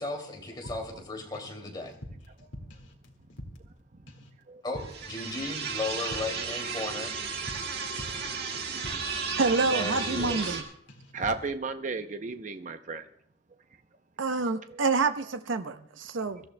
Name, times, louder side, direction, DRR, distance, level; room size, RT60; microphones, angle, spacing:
voice 1, 0.0-1.9 4.6-7.2 9.6-10.6, left 2 dB, 25° left, 1 dB, 2.5 m, -36 dB
sound 1, 0.7-1.6 1.8-3.8 4.1-4.4 4.7-5.2 5.4-9.2 9.5-9.8 10.1-10.6 10.9-11.5, equal, 80° left, 1.9 m, -46 dB
sound 2, 4.8-10.6, right 5 dB, 60° right, 1.7 m, -34 dB
voice 2, 9.4-10.6 14.2-16.4, right 3 dB, 90° right, 9 dB, 0.7 m, -27 dB
voice 3, 11.1-13.0, right 4 dB, 40° right, 8 dB, 0.7 m, -33 dB
24.5 x 14.0 x 2.2 m, 0.70 s
head